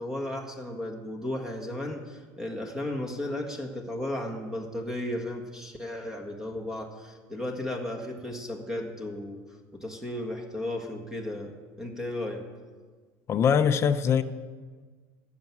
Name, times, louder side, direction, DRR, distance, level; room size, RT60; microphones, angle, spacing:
voice 1, 0.0-9.4 9.7-12.4, left 1 dB, 5° right, 2 dB, 1.7 m, -34 dB
voice 2, 13.3-14.2, left 7 dB, 35° left, 8 dB, 0.7 m, -22 dB
14.5 x 6.0 x 9.5 m, 1.5 s
cardioid pair, 130°, 8 cm